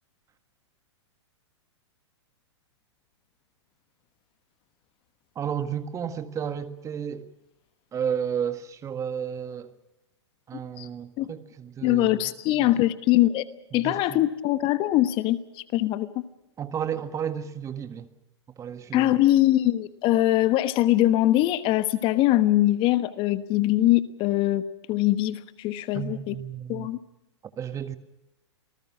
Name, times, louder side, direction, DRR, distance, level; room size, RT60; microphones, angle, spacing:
voice 1, 5.3-7.3 7.9-9.7 10.5-12.7 13.7-14.2 16.6-18.1 18.6-19.2 25.9-26.9 27.6-28.0, right 8 dB, 20° right, 1.7 m, -32 dB
voice 2, 11.8-13.4 13.7-15.4 15.7-16.2 18.9-26.3 26.7-27.0, left 15 dB, 35° left, 1.2 m, -22 dB
27.5 x 19.5 x 6.2 m
hypercardioid pair, 115°, 15 cm